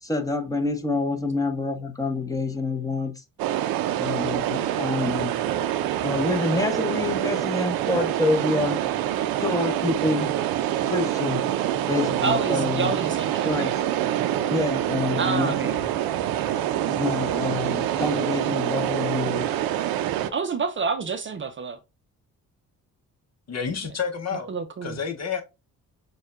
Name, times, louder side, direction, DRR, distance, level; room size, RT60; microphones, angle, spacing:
voice 1, 0.0-3.2 4.0-5.3 6.0-8.8 9.4-10.3 10.8-11.5 11.9-13.0 13.4-13.7 14.5-15.7 16.9-19.5, left 3 dB, 10° left, 0.9 m, -27 dB
sound 1, 3.4-20.3, right 12 dB, 80° right, 0.5 m, -26 dB
voice 2, 3.9-4.3 12.2-13.7 15.2-15.9 20.3-21.8 24.3-25.0, right 5 dB, 35° right, 0.6 m, -29 dB
voice 3, 23.5-24.5 24.8-25.4, left 6 dB, 45° left, 0.8 m, -29 dB
6.2 x 2.3 x 2.4 m
cardioid pair, 75°, 35 cm